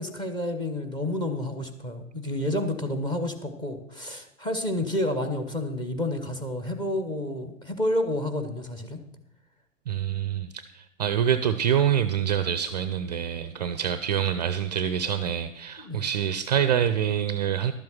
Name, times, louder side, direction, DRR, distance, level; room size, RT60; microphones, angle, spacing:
voice 1, 0.0-9.0 15.8-16.0, left 1 dB, 10° left, 8 dB, 1.0 m, -30 dB
voice 2, 9.9-17.7, right 9 dB, 35° right, 12 dB, 0.5 m, -26 dB
12.0 x 7.5 x 5.8 m, 0.78 s
figure-of-eight pair, 115°, 39 cm